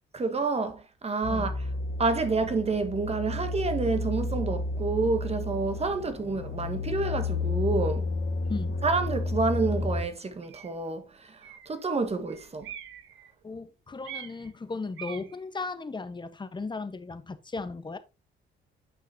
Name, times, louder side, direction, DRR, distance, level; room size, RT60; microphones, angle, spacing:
voice 1, 0.1-1.6 2.0-8.1 8.8-12.7, right 3 dB, 30° right, 1.6 m, -29 dB
sound 1, 1.2-10.0, left 3 dB, 70° left, 3.3 m, -31 dB
voice 2, 8.5-8.8 13.4-18.0, left 3 dB, 25° left, 1.2 m, -36 dB
sound 2, 8.5-8.6 9.5-9.6 10.4-10.8 11.4-11.8 12.3-13.5 14.0-14.5 15.0-15.4, right 9 dB, 80° right, 1.3 m, -44 dB
9.3 x 5.7 x 2.8 m
cardioid pair, 90°, 20 cm